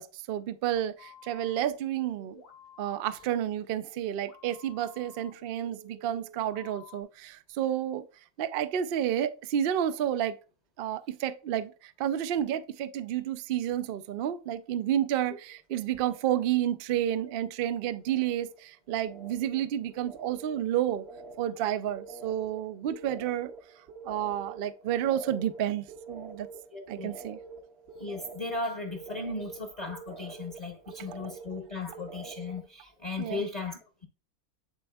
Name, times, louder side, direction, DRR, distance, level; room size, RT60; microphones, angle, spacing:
voice 1, 0.0-2.4 2.8-8.0 8.4-10.4 10.8-21.0 21.4-23.5 24.0-26.5 26.9-27.4 33.2-33.4, right 11 dB, 80° right, 0.5 m, -30 dB
sound 1, 1.0-7.0, left 4 dB, 75° left, 1.6 m, -53 dB
sound 2, 15.1-15.6 15.9-16.6 16.9-32.7, right 4 dB, 55° right, 0.8 m, -47 dB
voice 2, 26.7-27.2 28.0-34.1, left 3 dB, 35° left, 0.7 m, -36 dB
10.5 x 4.2 x 2.3 m
omnidirectional pair, 1.5 m